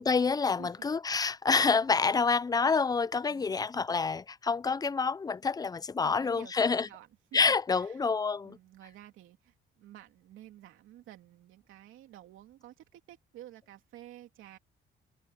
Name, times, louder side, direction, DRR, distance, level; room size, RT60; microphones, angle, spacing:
voice 1, 0.0-6.9 7.3-8.6, left 5 dB, 20° left, 0.5 m, -27 dB
voice 2, 3.3-3.6 6.0-8.0 8.4-14.6, right 13 dB, 90° right, 2.9 m, -52 dB
cardioid pair, 90°, 20 cm